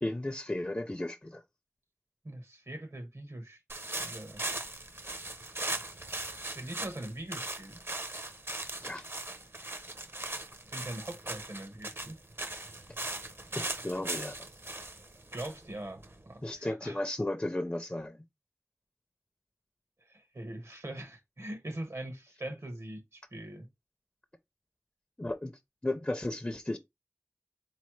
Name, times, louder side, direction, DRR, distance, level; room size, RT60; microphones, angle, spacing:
voice 1, 0.0-1.4 8.8-9.1 13.6-14.3 16.4-18.2 25.2-25.5 25.8-26.8, left 1 dB, 25° left, 0.4 m, -34 dB
voice 2, 2.2-3.6 4.0-4.4 6.5-7.8 10.7-12.2 15.3-16.0 16.3-17.0 20.1-23.7, right 1 dB, 80° right, 1.2 m, -42 dB
sound 1, 3.7-16.5, right 2 dB, 55° right, 0.6 m, -39 dB
3.9 x 3.1 x 3.0 m
wide cardioid pair, 45°, 5 cm